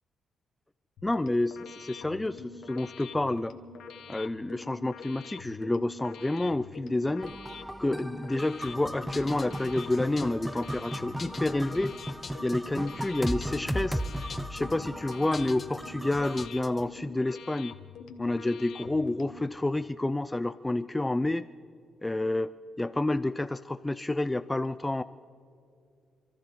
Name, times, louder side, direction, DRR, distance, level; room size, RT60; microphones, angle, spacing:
sound 1, 1.0-19.5, left 5 dB, 80° left, 1.3 m, -46 dB
voice 1, 1.0-3.5 4.1-7.3 7.8-11.9 12.4-14.0 14.5-17.7 18.2-21.5 22.0-22.5 22.8-25.0, left 2 dB, 15° left, 12 dB, 0.4 m, -29 dB
sound 2, 7.2-16.5, equal, 5° right, 0.8 m, -36 dB
sound 3, 8.6-16.9, left 5 dB, 45° left, 0.8 m, -46 dB
28.0 x 14.0 x 3.2 m, 2.5 s
cardioid pair, 70°, 0 cm